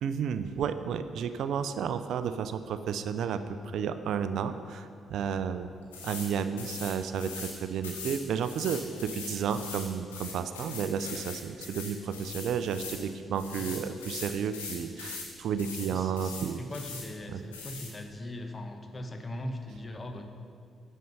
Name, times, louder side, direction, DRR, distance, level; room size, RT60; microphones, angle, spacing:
voice 1, 0.0-5.7 6.0-16.6 17.3-17.4, right 7 dB, 65° right, 11 dB, 0.4 m, -32 dB
sound 1, 5.9-6.3 6.6-7.5 7.8-13.0 13.3-15.3 15.6-15.9 16.2-17.1 17.5-17.9, left 4 dB, 85° left, 1.1 m, -41 dB
voice 2, 15.9-20.2, left 1 dB, 30° left, 5 dB, 1.1 m, -40 dB
9.2 x 6.4 x 5.6 m, 2.3 s
hypercardioid pair, 40°, 0 cm